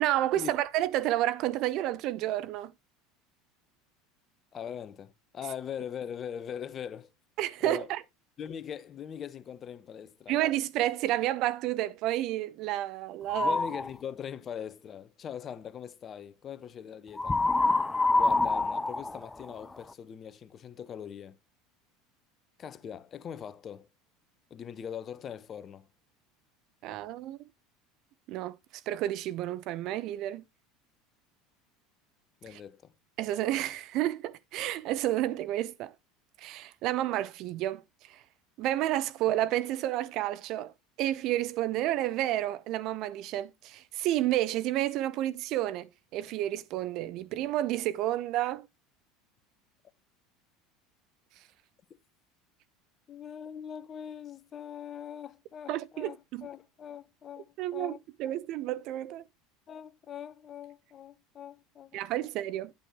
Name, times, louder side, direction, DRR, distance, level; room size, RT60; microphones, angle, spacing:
voice 1, 0.0-2.7 7.4-8.0 10.3-13.6 26.8-27.4 28.3-28.6 28.9-30.4 32.5-32.6 33.2-35.9 36.4-37.8 38.1-38.2 38.6-40.7 41.0-48.7 55.7-56.5 57.6-59.2 61.9-62.7, right 14 dB, 55° right, 0.8 m, -30 dB
voice 2, 4.5-7.1 7.6-7.9 8.4-10.4 13.4-17.4 18.1-21.4 22.6-23.9 24.5-25.9 32.4-32.9 53.1-58.0 59.7-62.3, left 8 dB, 35° left, 1.1 m, -41 dB
sound 1, 13.3-13.9 17.2-19.9, left 2 dB, 15° left, 0.6 m, -26 dB
10.0 x 8.8 x 3.0 m
hypercardioid pair, 75°, 0 cm